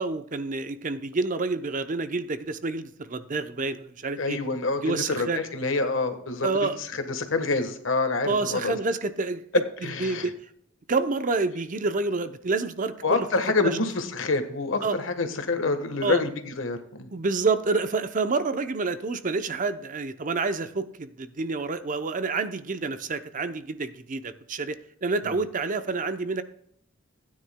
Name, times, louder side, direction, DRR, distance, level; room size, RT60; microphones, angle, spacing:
voice 1, 0.0-4.4 4.8-5.4 6.4-6.8 8.2-9.4 10.0-10.3 10.9-13.3 13.6-13.8 14.8-14.9 16.0-16.2 17.1-26.4, right 3 dB, 40° right, 11 dB, 0.6 m, -28 dB
voice 2, 4.2-8.8 9.8-10.3 13.0-17.1 25.2-25.4, left 3 dB, 80° left, 8 dB, 1.3 m, -27 dB
16.0 x 9.6 x 2.2 m, 0.70 s
head